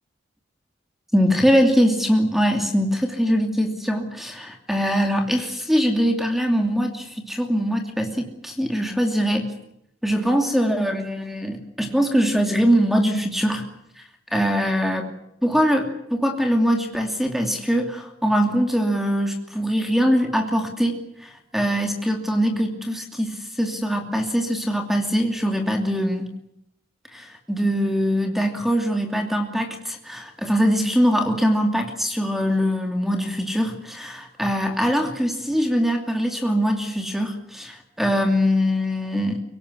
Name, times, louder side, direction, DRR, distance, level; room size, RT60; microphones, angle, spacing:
voice 1, 1.1-9.5 10.0-13.6 14.3-15.1 15.4-20.9 21.2-26.3 27.1-39.4, equal, ahead, 4 dB, 2.6 m, -22 dB
24.5 x 17.5 x 9.8 m, 0.76 s
head